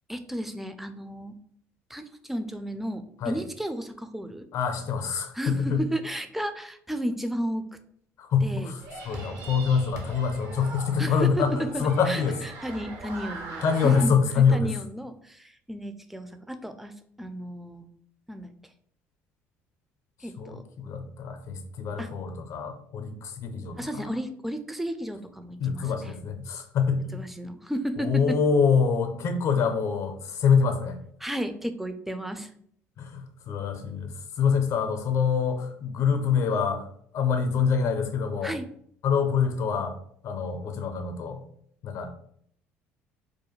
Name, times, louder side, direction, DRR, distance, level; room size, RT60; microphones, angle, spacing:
voice 1, 0.1-1.3 1.9-4.5 5.3-7.6 8.4-8.7 11.0-12.2 12.6-17.9 18.3-18.5 20.2-20.6 22.0-22.1 23.8-26.1 27.1-28.4 31.2-32.5 38.4-38.7, right 1 dB, 5° right, 8 dB, 0.3 m, -33 dB
voice 2, 4.5-5.8 8.2-12.4 13.6-14.8 20.4-24.1 25.6-27.2 28.0-31.0 33.0-36.9 37.1-38.5 39.0-40.0 40.2-41.4 41.8-42.1, left 6 dB, 60° left, 7 dB, 0.5 m, -25 dB
sound 1, 8.8-14.0, right 3 dB, 65° right, 0.6 m, -41 dB
2.4 x 2.2 x 3.0 m, 0.64 s
hypercardioid pair, 65°, 6 cm